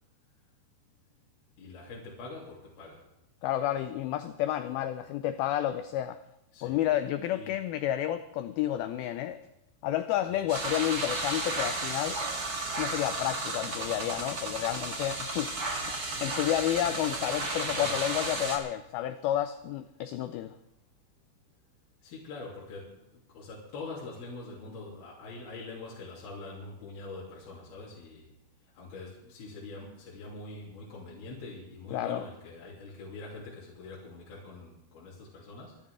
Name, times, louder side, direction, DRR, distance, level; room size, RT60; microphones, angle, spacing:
voice 1, 1.6-3.1 6.5-6.8 7.3-7.6 10.2-10.3 15.9-16.0 17.7-17.9 22.0-23.0 23.3-28.3 28.7-35.8, left 3 dB, 65° left, -6 dB, 4.7 m, -44 dB
voice 2, 3.4-6.2 6.6-9.4 9.8-12.2 12.8-15.5 16.2-20.5 31.9-32.2, left 12 dB, 90° left, 10 dB, 2.1 m, -30 dB
sound 1, 10.5-18.6, right 2 dB, 40° right, 1.3 m, -33 dB
26.0 x 11.5 x 3.6 m, 0.89 s
omnidirectional pair, 5.1 m